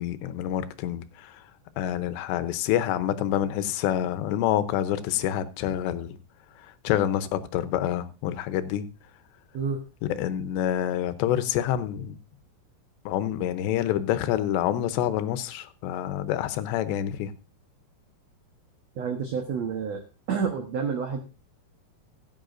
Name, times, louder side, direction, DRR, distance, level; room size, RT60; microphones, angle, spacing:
voice 1, 0.0-1.4 1.8-6.2 6.6-8.8 10.0-12.2 13.1-17.3, left 11 dB, 90° left, 3.0 m, -27 dB
voice 2, 9.5-9.9 18.9-20.0 20.3-21.2, right 6 dB, 85° right, 1.5 m, -29 dB
16.0 x 9.6 x 2.6 m
omnidirectional pair, 4.9 m